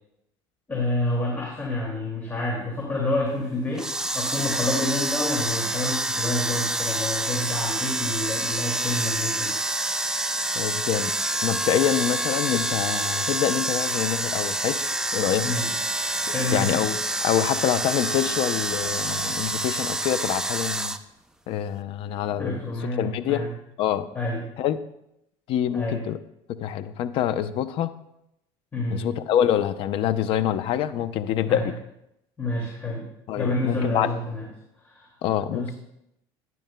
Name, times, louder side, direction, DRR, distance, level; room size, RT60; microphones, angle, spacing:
voice 1, 0.7-9.5 15.4-15.7 16.2-16.7 22.4-23.5 24.1-24.4 25.7-26.0 28.7-29.0 31.5-31.7 32.4-33.1 33.4-34.5 34.8-35.2 35.5-35.7, left 2 dB, 20° left, -4 dB, 2.3 m, -28 dB
sound 1, 3.7-21.0, right 1 dB, 5° right, 0.4 m, -27 dB
voice 2, 10.5-11.1 11.4-14.8 15.1-15.5 16.5-17.0 17.2-20.9 21.5-22.6 23.0-23.4 23.8-24.1 24.6-24.8 25.5-26.2 26.6-27.9 28.9-31.7 33.3-34.1 35.2-35.7, left 10 dB, 55° left, 12 dB, 0.6 m, -25 dB
Gurgling / Toilet flush, 15.0-19.8 20.7-20.8, left 5 dB, 85° left, 1.6 m, -45 dB
12.5 x 10.5 x 2.2 m, 0.82 s
supercardioid pair, 115°, 11 cm